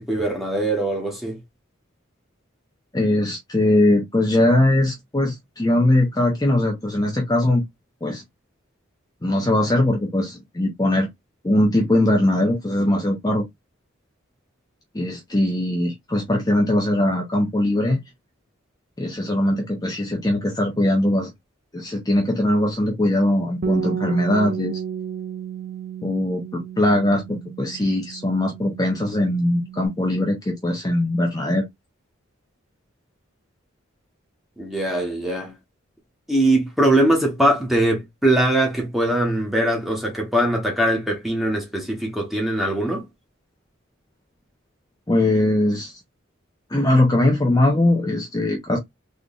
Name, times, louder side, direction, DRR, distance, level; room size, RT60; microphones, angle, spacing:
voice 1, 0.0-1.4 34.6-35.5 36.3-43.1, right 1 dB, ahead, 1.2 m, -21 dB
voice 2, 2.9-7.6 8.0-8.2 9.2-11.1 11.4-13.4 14.9-18.0 19.0-21.3 21.7-24.8 26.0-31.7 45.1-46.0 46.7-48.8, left 1 dB, 20° left, 0.7 m, -21 dB
Bass guitar, 23.6-29.9, right 8 dB, 45° right, 0.5 m, -32 dB
3.8 x 3.2 x 2.4 m
head